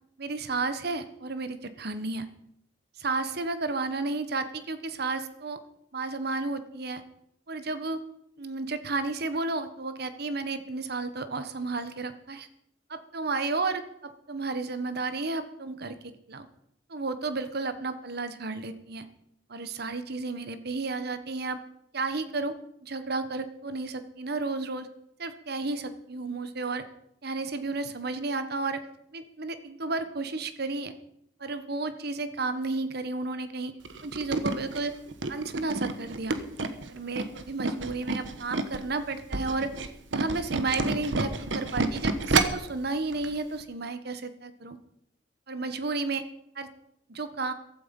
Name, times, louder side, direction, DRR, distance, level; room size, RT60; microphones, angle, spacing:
voice 1, 0.2-2.3 3.0-5.6 5.9-7.0 7.5-8.0 8.4-12.5 12.9-16.5 16.9-19.0 19.5-21.6 21.9-22.5 22.8-24.9 25.2-26.8 27.2-28.8 29.1-30.9 31.4-33.7 34.0-34.9 35.3-36.4 36.9-39.7 40.1-44.8 45.5-46.2 46.5-46.7 47.1-47.5, right 3 dB, 60° right, 11 dB, 1.3 m, -32 dB
Tools, 33.8-38.8 39.2-42.7 43.1-43.3 43.6-43.7, right 3 dB, 85° right, 1.2 m, -29 dB
15.5 x 12.5 x 5.4 m, 0.75 s
head